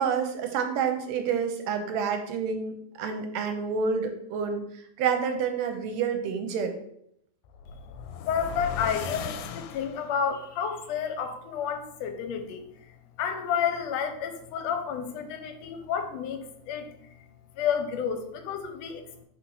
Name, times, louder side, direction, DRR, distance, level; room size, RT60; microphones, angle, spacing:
voice 1, 0.0-6.7, right 6 dB, 75° right, 6 dB, 1.7 m, -28 dB
sound 1, 7.4-10.3, left 7 dB, 90° left, 2.1 m, -37 dB
voice 2, 8.2-12.6 13.2-16.9 17.5-19.2, left 7 dB, 75° left, 6 dB, 1.7 m, -30 dB
4.4 x 4.2 x 5.4 m, 0.73 s
omnidirectional pair, 3.5 m